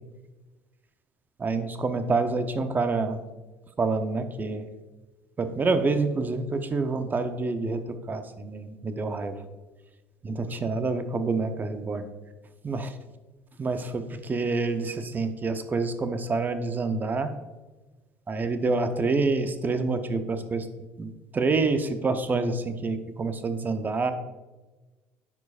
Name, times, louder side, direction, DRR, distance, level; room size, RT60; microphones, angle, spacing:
voice 1, 1.4-3.2 3.8-4.7 5.4-7.8 8.1-9.3 10.2-12.0 12.6-12.9 13.6-17.3 18.3-20.7 21.0-24.1, right 3 dB, 30° right, 9 dB, 0.8 m, -27 dB
10.5 x 4.8 x 2.5 m, 1.2 s
hypercardioid pair, 65°, 6 cm